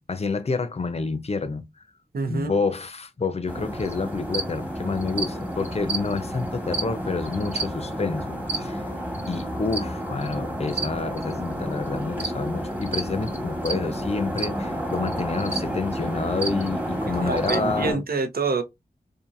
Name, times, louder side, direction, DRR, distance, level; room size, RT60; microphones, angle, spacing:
voice 1, 0.0-1.7 2.3-8.8 9.3-18.0, left 4 dB, 40° left, 0.6 m, -28 dB
voice 2, 2.1-2.6 17.2-18.6, right 4 dB, 65° right, 0.7 m, -26 dB
sound 1, 3.5-17.9, right 1 dB, 10° right, 1.2 m, -30 dB
2.7 x 2.5 x 2.5 m
cardioid pair, 45°, 17 cm